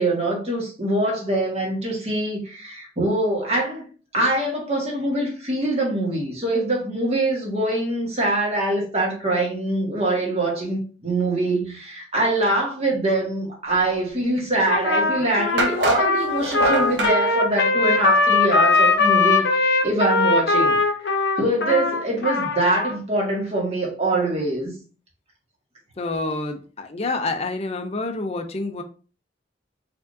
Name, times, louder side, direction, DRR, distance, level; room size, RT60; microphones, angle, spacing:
voice 1, 0.0-3.8 4.1-20.8 21.1-24.7, right 2 dB, 35° right, 1.7 m, -24 dB
Trumpet, 14.7-23.0, left 3 dB, 70° left, 0.8 m, -20 dB
sound 1, 14.7-14.8 15.6-17.2, right 1 dB, 75° right, 0.8 m, -24 dB
voice 2, 26.0-28.8, left 3 dB, 35° left, 0.5 m, -28 dB
4.6 x 3.6 x 2.7 m
head